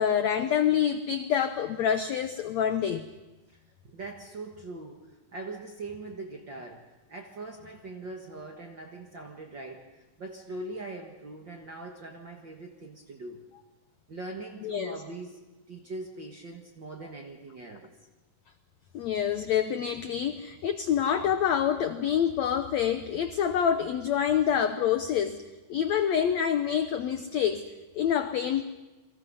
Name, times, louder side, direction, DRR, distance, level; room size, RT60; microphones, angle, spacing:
voice 1, 0.0-3.0 14.6-15.0 18.9-25.4 25.7-27.7 27.9-28.6, left 9 dB, 80° left, 9 dB, 1.6 m, -27 dB
voice 2, 3.8-13.4 14.1-15.4 15.7-17.9, right 2 dB, 50° right, 2 dB, 1.4 m, -41 dB
29.5 x 22.5 x 5.5 m, 1.1 s
omnidirectional pair, 4.3 m